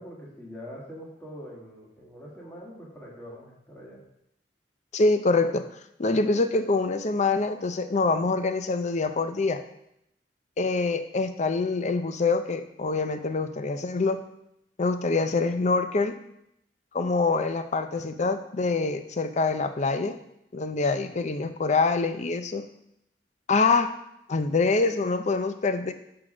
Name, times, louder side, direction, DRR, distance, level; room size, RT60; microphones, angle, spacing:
voice 1, 0.0-4.0, equal, 10° left, -4 dB, 1.8 m, -43 dB
voice 2, 4.9-5.6 6.0-9.6 10.6-14.2 14.8-16.2 16.9-20.2 20.5-22.6 23.5-23.9 24.3-25.9, left 3 dB, 40° left, 9 dB, 0.5 m, -25 dB
5.9 x 4.7 x 6.2 m, 0.79 s
head